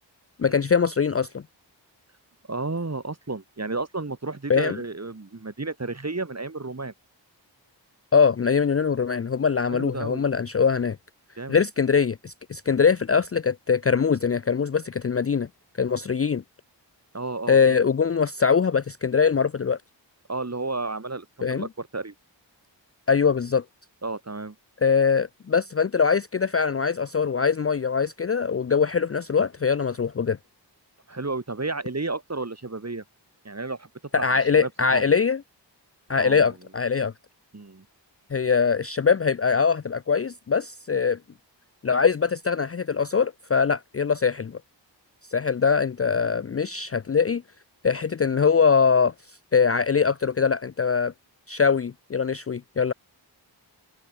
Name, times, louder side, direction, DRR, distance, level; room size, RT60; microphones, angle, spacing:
voice 1, 0.4-1.4 4.5-4.8 8.1-11.0 11.5-15.5 15.8-16.4 17.5-19.8 21.4-21.7 23.1-23.6 24.8-30.4 34.1-35.4 36.1-37.1 38.3-41.2 41.8-44.6 45.3-47.4 47.8-49.1 49.5-51.1 51.5-52.9, left 6 dB, 35° left, 0.5 m, -22 dB
voice 2, 2.5-6.9 9.7-10.2 11.4-11.6 17.1-17.6 20.3-22.1 24.0-24.6 31.1-33.0 33.4-33.9 34.1-35.0 36.2-36.5 37.5-37.8, right 3 dB, 35° right, 2.6 m, -32 dB
wide cardioid pair, 55°, 44 cm